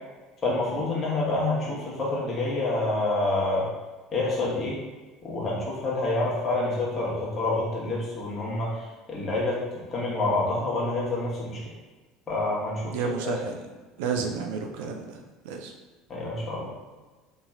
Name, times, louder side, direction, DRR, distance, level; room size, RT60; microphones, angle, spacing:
voice 1, 0.4-3.7 4.1-4.8 5.2-8.7 9.1-9.6 9.9-11.6 12.3-13.4 16.1-16.7, left 2 dB, 35° left, -5 dB, 1.3 m, -27 dB
voice 2, 12.9-13.6 14.0-15.2 15.4-15.7, right 5 dB, 65° right, 3 dB, 0.4 m, -31 dB
4.0 x 2.9 x 2.4 m, 1.3 s
figure-of-eight pair, 70°, 0 cm